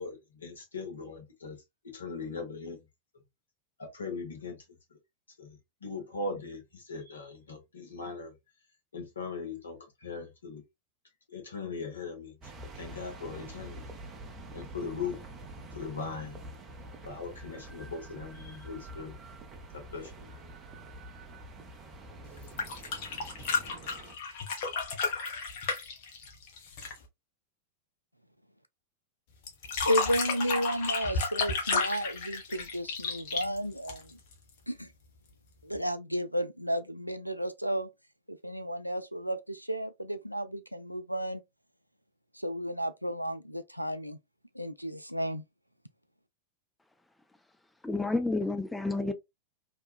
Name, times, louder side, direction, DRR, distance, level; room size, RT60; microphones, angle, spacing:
voice 1, 0.0-1.6 1.8-2.8 3.8-4.6 5.4-8.3 8.9-10.6 11.3-12.4 12.8-13.9 14.5-15.2 15.8-16.4 17.0-19.1 19.7-20.3, left 4 dB, 75° left, 1.0 m, -39 dB
sound 1, 12.4-24.2, right 1 dB, 25° right, 0.7 m, -46 dB
sound 2, 22.4-27.0 29.5-34.3 35.7-35.8, left 4 dB, 50° left, 0.9 m, -32 dB
voice 2, 29.8-34.2 34.7-34.9 35.6-37.9 38.3-41.4 42.3-44.2 44.5-45.4, equal, 90° right, 0.3 m, -33 dB
voice 3, 47.8-49.1, left 2 dB, 5° left, 0.4 m, -30 dB
2.9 x 2.2 x 2.3 m
figure-of-eight pair, 90°, 0 cm